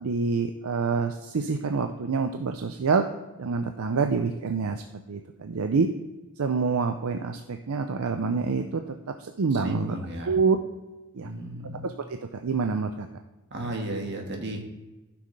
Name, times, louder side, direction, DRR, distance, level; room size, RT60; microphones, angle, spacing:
voice 1, 0.0-3.0 3.4-4.8 5.1-5.9 6.4-8.8 9.2-9.9 10.3-10.6 11.1-11.3 11.8-13.1, right 4 dB, 70° right, 6 dB, 0.5 m, -26 dB
voice 2, 9.5-10.3 11.2-11.9 13.5-14.7, right 1 dB, 50° right, 1 dB, 1.7 m, -34 dB
14.5 x 6.2 x 3.3 m, 1.1 s
head